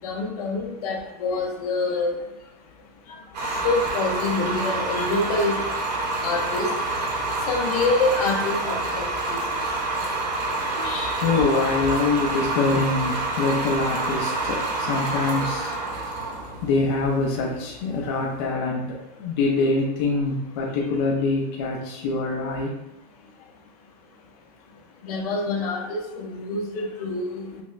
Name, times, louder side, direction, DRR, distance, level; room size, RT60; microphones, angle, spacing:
voice 1, 0.0-2.1 3.4-5.6 6.2-6.7 7.5-9.4 10.8-11.2 11.7-11.8 13.4-13.5 25.0-27.6, left 3 dB, 65° left, 1 dB, 0.8 m, -26 dB
sound 1, 3.3-18.3, right 2 dB, 80° right, 1.0 m, -28 dB
voice 2, 11.2-15.8 16.6-22.7, left 3 dB, 40° left, -2 dB, 0.4 m, -24 dB
5.8 x 2.1 x 2.3 m, 0.91 s
supercardioid pair, 175°, 21 cm